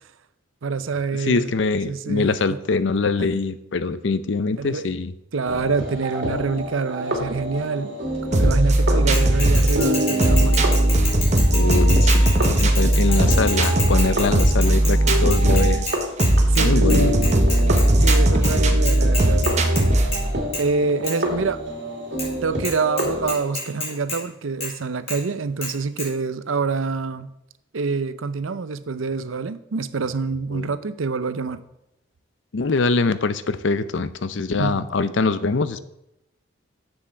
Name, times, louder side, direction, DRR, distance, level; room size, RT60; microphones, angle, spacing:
voice 1, 0.6-1.5 1.9-2.6 3.2-3.4 4.6-4.9 5.3-8.0 8.3-10.7 16.5-17.2 17.9-19.5 20.6-21.6 22.4-27.3 27.7-31.6 34.6-34.9, right 4 dB, 80° right, 13 dB, 0.6 m, -26 dB
voice 2, 1.2-5.1 9.1-9.2 11.5-15.9 16.6-17.2 18.0-18.2 18.5-18.6 30.5-30.7 32.5-35.8, left 4 dB, 65° left, 14 dB, 0.6 m, -23 dB
sound 1, 5.5-16.4 16.7-23.3, equal, 55° right, 2.4 m, -28 dB
sound 2, 8.3-20.3, right 1 dB, 35° right, 0.9 m, -18 dB
Bicycle / Mechanisms, 9.1-16.3 16.6-16.7 16.9-18.2 18.4-18.5 18.9-19.8 20.1-20.3 20.5-20.6 21.0-21.1 22.2-22.3 22.6-22.7 23.0-24.2 24.6-24.7 25.1-25.2 25.6-25.7 26.0-26.1, left 2 dB, 30° left, 3.7 m, -29 dB
7.1 x 7.1 x 6.6 m, 0.84 s
head